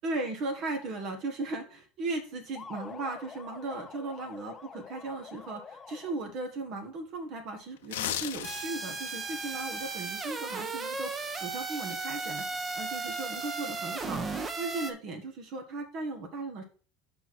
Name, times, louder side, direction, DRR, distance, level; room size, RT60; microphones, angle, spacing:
voice 1, 0.0-16.6, right 2 dB, 55° right, 5 dB, 1.6 m, -37 dB
sound 1, 2.6-6.4, left 5 dB, 30° left, 0.7 m, -47 dB
sound 2, 7.8-8.9 9.3-9.5, left 11 dB, 80° left, 0.8 m, -34 dB
sound 3, 8.4-14.9, right 3 dB, 25° right, 1.0 m, -35 dB
6.6 x 4.9 x 4.3 m, 0.39 s
hypercardioid pair, 90°, 0 cm